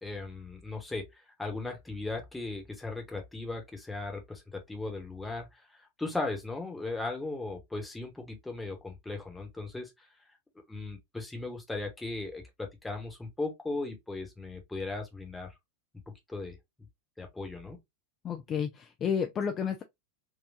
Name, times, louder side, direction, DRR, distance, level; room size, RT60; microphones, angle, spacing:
voice 1, 0.0-1.1 1.4-9.9 10.7-15.5 16.1-16.6 17.2-17.8, left 3 dB, 5° left, 1.2 m, -37 dB
voice 2, 18.2-19.8, left 7 dB, 25° left, 0.4 m, -31 dB
4.4 x 2.5 x 2.5 m
figure-of-eight pair, 90°, 0 cm